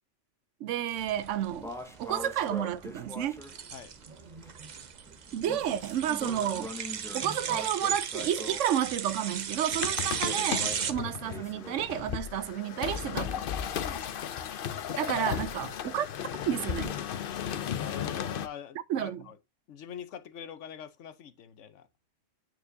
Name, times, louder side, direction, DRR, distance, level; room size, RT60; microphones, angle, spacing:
voice 1, 0.6-1.7 2.0-3.4 5.3-6.7 7.1-13.4 15.0-16.1 16.5-17.0 18.9-19.2, right 10 dB, 80° right, 0.9 m, -31 dB
sound 1, 0.9-10.9, right 7 dB, 50° right, 0.6 m, -36 dB
sound 2, 1.0-11.8, left 1 dB, 5° left, 0.6 m, -44 dB
sound 3, 9.7-18.5, left 9 dB, 55° left, 0.7 m, -35 dB
voice 2, 13.7-14.1 17.7-19.4 19.7-21.9, left 8 dB, 75° left, 1.1 m, -44 dB
9.1 x 4.4 x 2.7 m
omnidirectional pair, 1.3 m